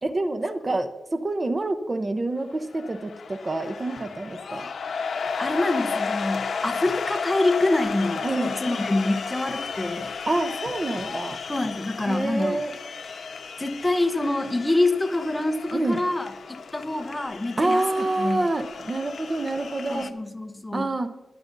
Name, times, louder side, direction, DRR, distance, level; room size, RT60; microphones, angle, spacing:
voice 1, 0.0-4.7 8.2-8.8 10.3-11.4 12.1-12.8 15.7-16.0 17.6-20.1 20.7-21.1, right 2 dB, 30° right, 8 dB, 0.8 m, -27 dB
sound 1, 2.5-20.1, left 5 dB, 70° left, 1.0 m, -33 dB
voice 2, 5.4-10.1 11.5-12.6 13.6-16.3 16.7-18.5 19.9-20.9, left 2 dB, 15° left, 8 dB, 0.9 m, -26 dB
21.5 x 9.6 x 2.7 m, 1.1 s
wide cardioid pair, 110°, 0 cm